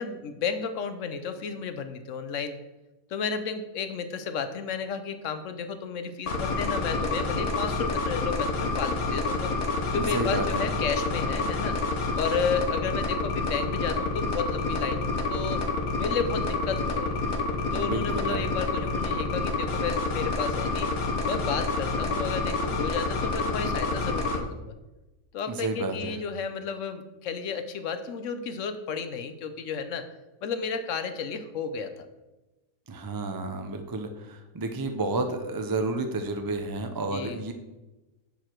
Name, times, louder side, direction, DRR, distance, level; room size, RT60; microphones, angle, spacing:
voice 1, 0.0-2.6 3.1-9.5 9.9-11.8 12.2-15.6 16.0-17.3 17.7-20.9 21.2-24.7 25.3-30.1 30.4-32.1 37.0-37.4, left 6 dB, 65° left, 10 dB, 1.0 m, -32 dB
sound 1, 6.3-24.4, left 3 dB, 90° left, 1.6 m, -28 dB
voice 2, 9.9-10.7 17.7-18.5 25.5-26.2 32.9-37.5, right 2 dB, 35° right, 6 dB, 0.3 m, -31 dB
10.5 x 4.8 x 4.5 m, 1.1 s
omnidirectional pair, 1.5 m